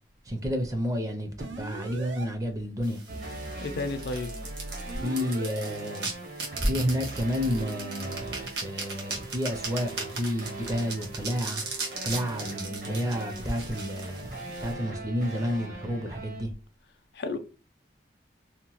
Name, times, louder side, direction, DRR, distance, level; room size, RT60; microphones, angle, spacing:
voice 1, 0.3-3.0 5.0-6.1 6.6-11.6 12.0-16.5, equal, 20° right, 0.4 m, -30 dB
sound 1, 1.4-2.3 3.1-5.7 6.5-8.2, right 2 dB, 85° right, 0.5 m, -41 dB
sound 2, 2.8-14.7, right 4 dB, 70° right, 1.0 m, -38 dB
sound 3, 3.1-16.4, right 2 dB, 45° right, 0.8 m, -41 dB
voice 2, 3.6-4.3 17.1-17.4, left 3 dB, 65° left, 0.4 m, -32 dB
2.8 x 2.1 x 2.9 m
head